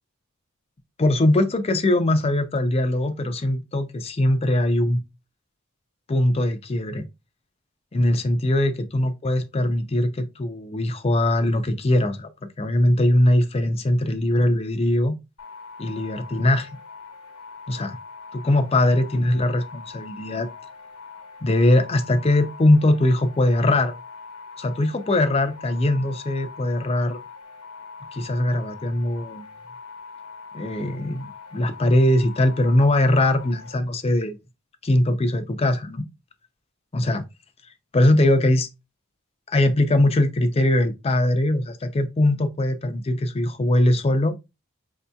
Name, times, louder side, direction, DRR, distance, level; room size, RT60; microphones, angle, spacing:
voice 1, 1.0-5.0 6.1-7.1 7.9-12.3 12.6-15.1 15.8-16.7 17.7-18.0 18.3-20.5 21.4-23.9 24.6-27.2 28.1-29.4 30.5-34.4 34.8-36.1 36.9-37.2 37.9-38.7 39.5-44.3, left 1 dB, 25° left, 0.4 m, -21 dB
sound 1, 15.4-33.7, left 4 dB, 85° left, 1.0 m, -42 dB
5.1 x 2.7 x 2.2 m
head